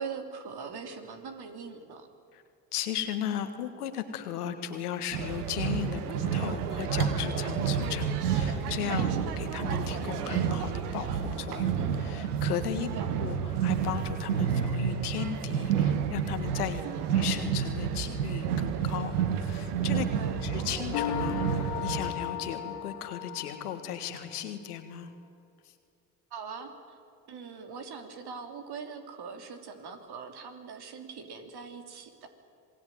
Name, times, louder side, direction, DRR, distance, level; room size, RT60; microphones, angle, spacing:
voice 1, 0.0-2.1 9.1-9.2 12.9-13.1 16.8-17.1 20.1-20.4 26.3-27.0 27.3-32.3, right 5 dB, 60° right, 6 dB, 3.5 m, -41 dB
voice 2, 2.7-9.1 9.4-12.9 13.2-16.8 17.1-20.1 20.4-25.1 25.6-25.7, left 10 dB, 90° left, 8 dB, 1.9 m, -36 dB
sound 1, 5.1-22.1, right 7 dB, 85° right, 1.5 m, -30 dB
sound 2, 20.9-24.3, left 10 dB, 70° left, 2.0 m, -35 dB
27.0 x 19.5 x 9.3 m, 2.3 s
hypercardioid pair, 55°, 45 cm